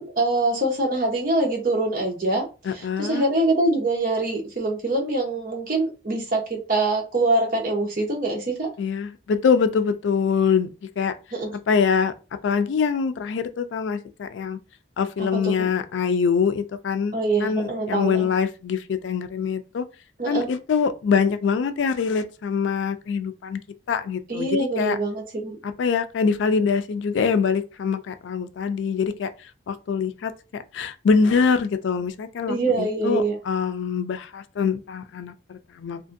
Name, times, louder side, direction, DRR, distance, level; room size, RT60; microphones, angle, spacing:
voice 1, 0.0-2.5 2.7-8.7 11.3-11.6 15.2-15.5 17.1-18.3 20.2-20.5 24.3-25.6 32.5-33.4, right 2 dB, 50° right, 0.8 m, -24 dB
voice 2, 2.7-3.2 8.8-10.7 11.0-11.1 11.7-12.1 12.4-14.6 15.0-17.1 17.4-19.8 20.3-23.6 23.9-25.0 25.6-29.3 29.7-30.3 30.7-36.0, left 6 dB, 85° left, 0.3 m, -24 dB
2.5 x 2.5 x 2.5 m
head